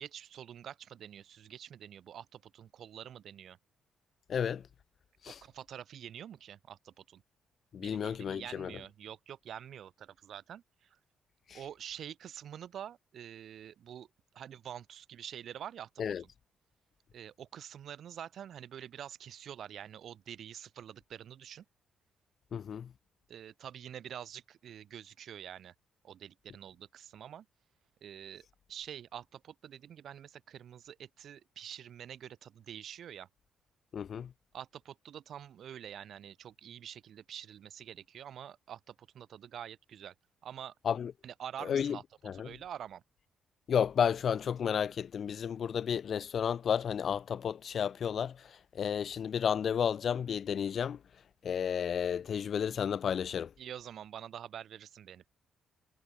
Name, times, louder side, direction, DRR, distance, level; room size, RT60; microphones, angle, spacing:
voice 1, 0.0-3.6 5.3-7.2 7.8-11.0 11.5-14.1 14.3-16.3 17.1-21.6 23.3-25.7 26.0-27.5 28.0-33.3 34.5-40.1 40.4-40.7 41.2-42.0 42.3-43.0 53.6-55.3, right 9 dB, 65° right, 4.3 m, -46 dB
voice 2, 4.3-4.7 5.2-5.4 7.7-8.7 11.5-11.6 16.0-16.2 22.5-22.9 33.9-34.3 40.8-41.1 41.6-42.0 42.2-42.5 43.7-51.0 51.4-53.5, left 8 dB, 55° left, 1.7 m, -32 dB
cardioid pair, 90°, 0 cm